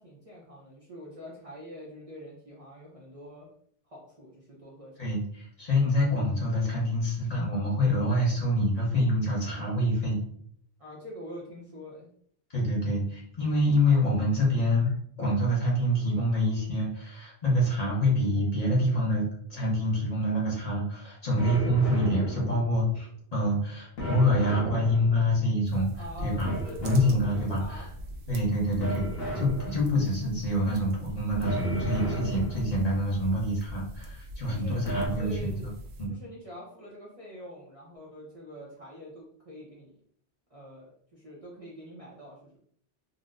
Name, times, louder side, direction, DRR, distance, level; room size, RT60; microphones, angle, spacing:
voice 1, 0.0-3.5 3.9-5.1 10.8-12.1 25.9-28.0 28.6-28.8 34.4-34.8 35.2-35.5 36.1-39.9 40.5-42.6, equal, 40° right, -5 dB, 0.6 m, -45 dB
voice 2, 5.0-10.2 12.5-26.6 26.8-27.9 28.3-29.0 29.3-35.7 36.0-36.1, left 1 dB, 40° left, -5 dB, 0.9 m, -26 dB
sound 1, 21.4-23.0 24.0-25.5 26.4-27.7 28.8-30.2 31.4-33.0 34.9-35.1, right 1 dB, 65° left, 1.0 m, -34 dB
sound 2, 25.6-36.1, right 1 dB, 70° right, 0.8 m, -42 dB
3.9 x 2.1 x 2.4 m, 0.63 s
omnidirectional pair, 1.1 m